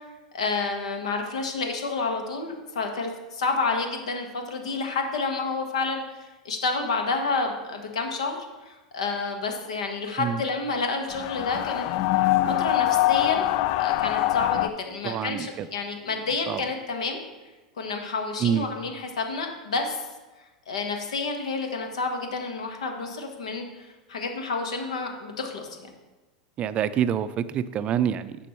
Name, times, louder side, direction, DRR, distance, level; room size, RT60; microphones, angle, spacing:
voice 1, 0.3-11.9 12.6-13.5 13.8-17.2 17.8-20.1 20.7-25.9, left 4 dB, 75° left, 4 dB, 1.3 m, -29 dB
sound 1, 11.1-14.7, left 14 dB, 55° left, 0.4 m, -23 dB
voice 2, 15.0-15.7 16.5-16.6 18.4-18.7 26.6-28.4, right 9 dB, 35° right, 14 dB, 0.5 m, -26 dB
11.0 x 7.0 x 3.1 m, 1.2 s
hypercardioid pair, 90°, 3 cm